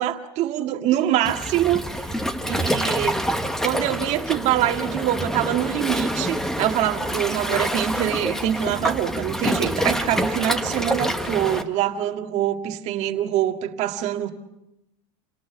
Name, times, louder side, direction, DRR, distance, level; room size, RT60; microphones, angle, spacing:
voice 1, 0.0-3.2 3.6-14.3, right 12 dB, 40° right, 5 dB, 1.8 m, -24 dB
Waves surf, 1.2-11.6, equal, 5° left, 1.0 m, -26 dB
28.5 x 18.0 x 7.0 m, 0.91 s
supercardioid pair, 155°, 17 cm